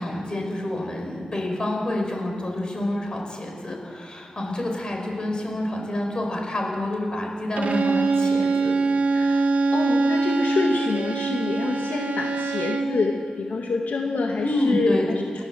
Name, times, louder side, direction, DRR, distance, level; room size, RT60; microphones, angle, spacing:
voice 1, 0.0-8.7 14.4-15.1, left 1 dB, 30° left, 1 dB, 4.8 m, -28 dB
Bowed string instrument, 7.6-13.0, right 3 dB, 55° right, 1.6 m, -23 dB
voice 2, 9.1-9.5 9.7-15.4, left 3 dB, 65° left, 1 dB, 1.7 m, -27 dB
29.0 x 13.0 x 7.5 m, 2.1 s
wide cardioid pair, 160°, 3 cm